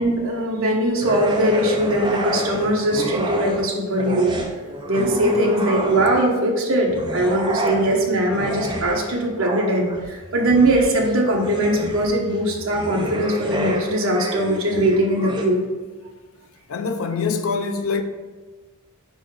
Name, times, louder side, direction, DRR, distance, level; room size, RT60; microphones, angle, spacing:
voice 1, 0.0-4.3 4.9-15.6, right 1 dB, 65° right, 1.1 m, -20 dB
sound 1, 1.0-3.7 4.0-6.4 6.9-15.5, right 1 dB, 20° right, 0.5 m, -29 dB
voice 2, 16.7-18.0, left 5 dB, 75° left, 0.5 m, -24 dB
4.7 x 4.1 x 4.8 m
head